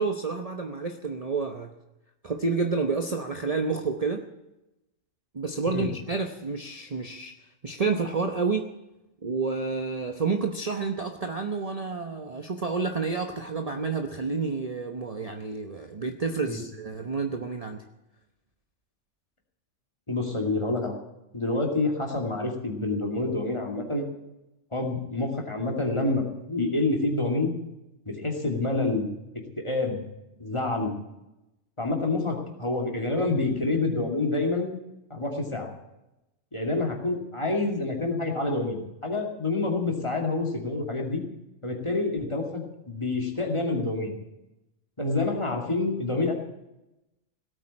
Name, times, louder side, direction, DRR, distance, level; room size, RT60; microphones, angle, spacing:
voice 1, 0.0-1.7 2.2-4.3 5.3-7.3 7.6-8.7 9.2-17.8, right 4 dB, 30° right, 5 dB, 0.9 m, -29 dB
voice 2, 20.1-20.9 21.3-24.1 24.7-27.5 28.1-29.1 29.6-30.0 30.4-30.9 31.8-34.7 35.1-35.7 36.5-41.2 41.6-44.1 45.0-46.3, left 2 dB, 20° left, 1 dB, 2.5 m, -27 dB
17.5 x 8.8 x 8.7 m, 0.93 s
omnidirectional pair, 1.4 m